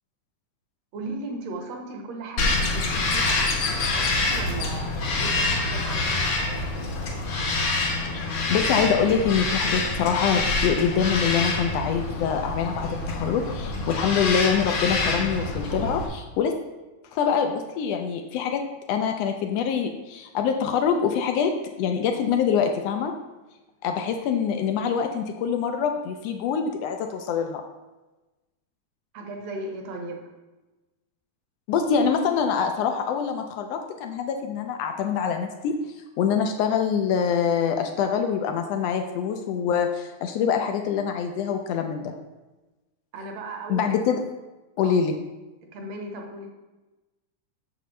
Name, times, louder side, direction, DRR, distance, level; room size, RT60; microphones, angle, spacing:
voice 1, 0.9-7.0 29.1-30.2 43.1-44.0 44.8-45.0 45.7-46.5, right 2 dB, 70° right, 2 dB, 2.0 m, -37 dB
Bird vocalization bird call bird song, 2.4-16.1, left 2 dB, 60° left, 1.4 m, -26 dB
voice 2, 8.1-16.5 17.1-18.6 18.9-21.5 21.8-23.1 23.8-27.6 31.7-35.7 36.2-42.1 43.7-44.2 44.8-45.2, left 7 dB, 80° left, 5 dB, 1.5 m, -25 dB
7.9 x 6.7 x 3.1 m, 1.1 s
omnidirectional pair, 3.4 m